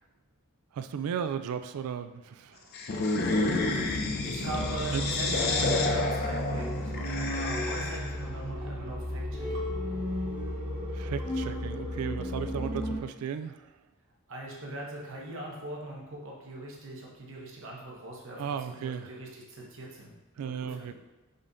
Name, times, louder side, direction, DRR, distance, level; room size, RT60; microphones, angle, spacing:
voice 1, 0.7-2.6 4.9-5.0 10.9-13.7 18.4-19.1 20.4-20.9, right 7 dB, 85° right, 11 dB, 0.3 m, -35 dB
sound 1, 2.7-8.2, left 3 dB, 45° left, 0.4 m, -30 dB
voice 2, 3.8-9.7 14.3-20.9, right 1 dB, 60° right, -2 dB, 1.0 m, -41 dB
sound 2, 4.4-13.0, equal, 20° right, 1.0 m, -33 dB
5.3 x 3.5 x 2.6 m, 1.1 s
head